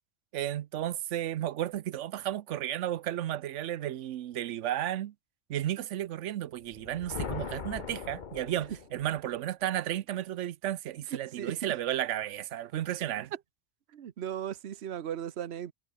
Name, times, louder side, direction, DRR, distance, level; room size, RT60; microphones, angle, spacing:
voice 1, 0.3-5.1 5.5-13.3, right 12 dB, 85° right, 1.0 m, -33 dB
sound 1, 6.6-9.3, left 6 dB, 45° left, 1.1 m, -40 dB
voice 2, 11.1-11.7 13.9-15.7, right 9 dB, 65° right, 1.1 m, -37 dB
omnidirectional pair, 1.2 m